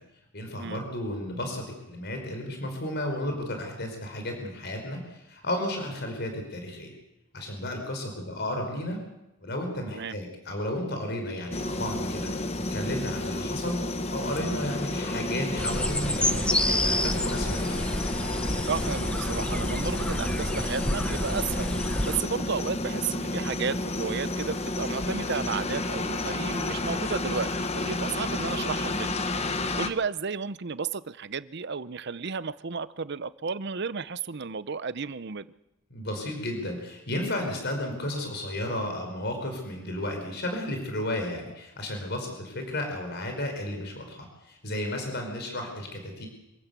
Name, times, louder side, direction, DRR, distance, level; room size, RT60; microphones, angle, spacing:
voice 1, 0.3-6.9 7.3-9.0 9.4-13.8 14.1-17.9 35.9-46.3, left 1 dB, 55° left, 4 dB, 5.0 m, -33 dB
sound 1, 11.5-29.9, left 2 dB, 30° left, 1.3 m, -31 dB
sound 2, 15.6-22.2, left 1 dB, 5° left, 0.9 m, -29 dB
voice 2, 18.7-21.7 22.0-29.3 29.8-35.5, right 5 dB, 55° right, 15 dB, 0.7 m, -33 dB
26.0 x 14.5 x 8.2 m, 0.93 s
head